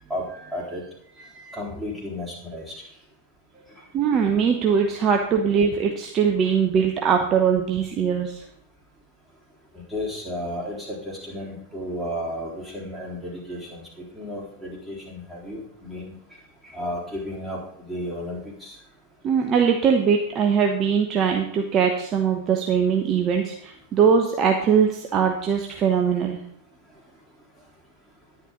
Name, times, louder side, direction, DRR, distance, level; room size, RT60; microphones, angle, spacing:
voice 1, 0.1-0.8 1.2-2.7 5.1-5.2 9.9-16.1 16.6-17.6 17.9-18.7, left 1 dB, 5° right, -5 dB, 3.8 m, -33 dB
voice 2, 3.9-8.4 19.2-26.4, right 6 dB, 30° right, 3 dB, 1.0 m, -21 dB
10.5 x 10.0 x 3.9 m, 0.69 s
figure-of-eight pair, 90°, 0 cm